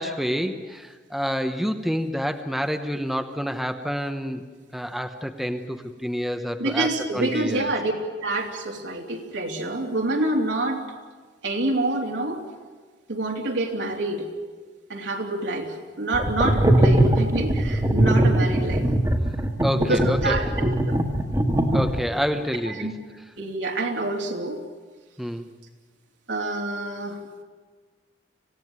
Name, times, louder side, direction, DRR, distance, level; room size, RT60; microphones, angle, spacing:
voice 1, 0.0-4.4 4.7-7.7 19.6-20.4 21.7-22.9 25.2-25.5, equal, ahead, 6 dB, 0.9 m, -28 dB
voice 2, 6.6-7.9 8.2-10.8 11.4-12.4 13.1-14.3 14.9-18.9 19.8-21.0 22.7-22.9 23.4-24.6 26.3-27.4, right 2 dB, 75° right, 1 dB, 3.4 m, -27 dB
sound 1, 16.1-22.2, right 1 dB, 20° right, 1.8 m, -20 dB
26.0 x 17.0 x 9.5 m, 1.5 s
head